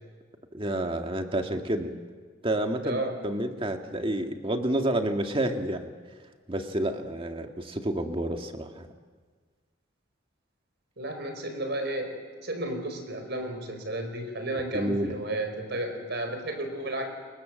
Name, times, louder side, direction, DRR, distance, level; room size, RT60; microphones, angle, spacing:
voice 1, 0.5-1.9 2.4-5.9 6.5-8.9 14.7-15.1, right 1 dB, 25° right, 5 dB, 1.9 m, -29 dB
voice 2, 11.0-12.2 12.4-17.1, right 1 dB, 55° right, 6 dB, 4.9 m, -32 dB
29.5 x 22.5 x 7.7 m, 1.5 s
head